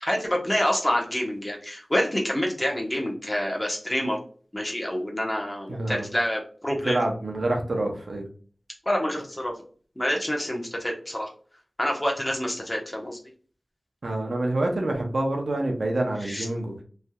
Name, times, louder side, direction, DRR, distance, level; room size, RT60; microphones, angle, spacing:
voice 1, 0.0-4.2 4.5-7.0 8.9-9.5 10.0-11.3 11.8-13.2 16.3-16.4, equal, 25° left, 0 dB, 1.0 m, -27 dB
voice 2, 5.7-6.1 6.8-8.3 14.0-16.8, right 2 dB, 75° right, 2 dB, 0.7 m, -27 dB
3.2 x 2.6 x 2.3 m, 0.42 s
cardioid pair, 40°, 0 cm